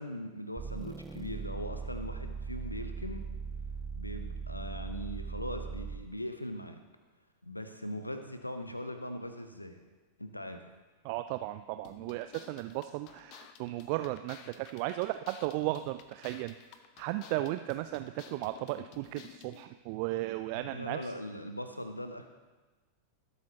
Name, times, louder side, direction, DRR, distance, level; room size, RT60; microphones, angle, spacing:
voice 1, 0.0-3.3 3.9-6.8 7.4-9.8 10.2-10.6 20.5-22.3, equal, 85° left, 8 dB, 0.8 m, -40 dB
sound 1, 0.6-6.2, right 5 dB, 10° right, 0.7 m, -39 dB
voice 2, 11.0-16.5 17.0-21.1, right 16 dB, 45° right, 10 dB, 0.3 m, -35 dB
sound 2, 11.8-19.6, left 9 dB, 40° left, 0.8 m, -54 dB
18.0 x 8.3 x 3.0 m, 1.3 s
figure-of-eight pair, 90°, 0 cm